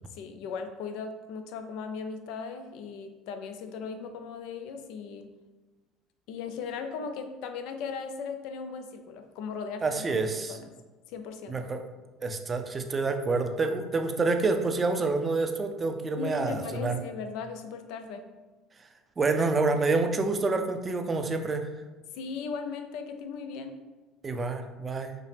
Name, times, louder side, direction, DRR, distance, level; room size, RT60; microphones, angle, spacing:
voice 1, 0.1-5.3 6.3-10.2 10.5-10.7 11.1-11.7 16.2-18.3 22.1-23.8, left 5 dB, 70° left, 7 dB, 0.4 m, -37 dB
voice 2, 9.8-10.5 11.5-11.8 12.2-17.0 19.2-21.6 24.2-25.1, right 3 dB, 30° right, 5 dB, 0.4 m, -27 dB
5.4 x 2.0 x 3.3 m, 1.2 s
supercardioid pair, 85°, 0 cm